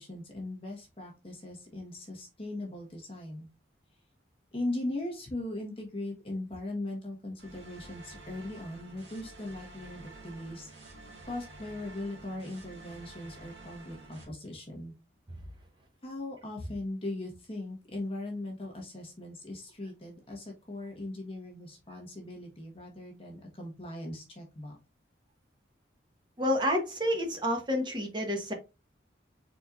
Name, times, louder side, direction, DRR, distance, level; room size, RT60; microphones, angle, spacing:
voice 1, 0.0-3.5 4.5-10.7 11.3-14.9 16.0-24.8, left 1 dB, 30° left, 1.2 m, -39 dB
sound 1, 7.4-14.2, right 2 dB, 70° right, 1.8 m, -50 dB
voice 2, 26.4-28.5, left 1 dB, 25° right, 1.0 m, -29 dB
4.3 x 4.2 x 2.4 m
head